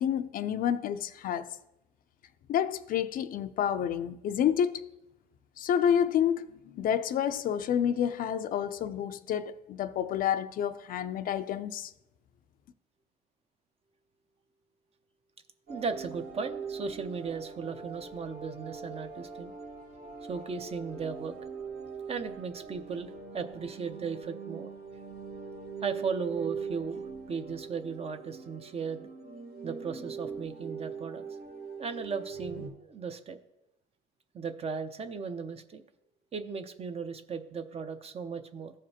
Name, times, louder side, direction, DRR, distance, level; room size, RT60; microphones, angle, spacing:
voice 1, 0.0-1.5 2.5-4.8 5.6-11.9, left 9 dB, 55° left, 0.4 m, -29 dB
voice 2, 15.7-19.5 20.3-21.4 22.1-24.7 25.8-29.1 29.6-31.2 31.8-33.4 34.3-35.8 36.3-38.7, right 5 dB, 35° right, 0.7 m, -36 dB
sound 1, 15.7-32.7, right 5 dB, 65° right, 1.5 m, -42 dB
14.5 x 5.0 x 2.8 m
cardioid pair, 110°, 17 cm